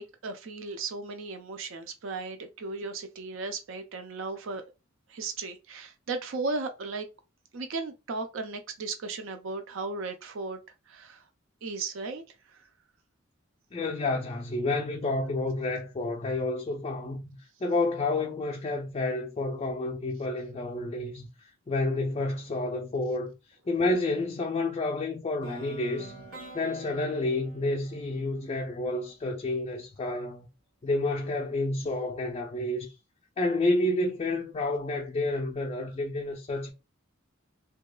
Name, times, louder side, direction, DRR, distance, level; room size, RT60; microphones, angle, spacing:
voice 1, 0.0-4.6 5.1-7.1 7.5-10.6 10.9-11.3 11.6-12.2 12.5-12.6, right 3 dB, 65° right, 0.4 m, -36 dB
voice 2, 13.7-17.3 17.6-23.3 23.7-26.3 26.5-30.5 30.8-32.9 33.4-36.7, left 2 dB, 30° left, 0.3 m, -30 dB
sound 1, 25.4-29.4, right 2 dB, 85° right, 1.5 m, -48 dB
2.8 x 2.2 x 2.2 m
head